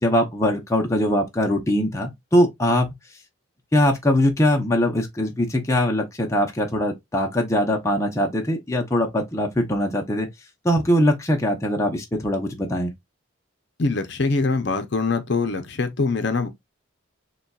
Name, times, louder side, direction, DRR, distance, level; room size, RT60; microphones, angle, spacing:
voice 1, 0.0-2.9 3.7-10.3 10.6-12.9, equal, 15° left, 0.7 m, -21 dB
voice 2, 13.8-16.5, left 3 dB, 55° left, 0.6 m, -23 dB
6.7 x 2.3 x 2.3 m
head